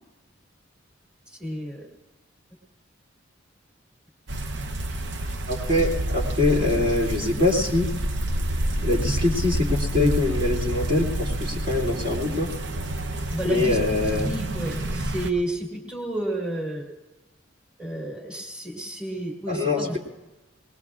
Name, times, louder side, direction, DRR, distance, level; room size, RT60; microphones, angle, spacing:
voice 1, 1.3-1.9 13.3-14.0 14.2-16.8 17.8-20.0, right 1 dB, 5° right, -3 dB, 2.2 m, -31 dB
sound 1, 4.3-15.3, right 1 dB, 60° right, 0.7 m, -28 dB
voice 2, 5.5-7.9 8.8-12.5 13.4-14.3 19.5-20.0, left 2 dB, 45° right, -3 dB, 2.4 m, -23 dB
20.5 x 20.0 x 2.4 m, 1.1 s
head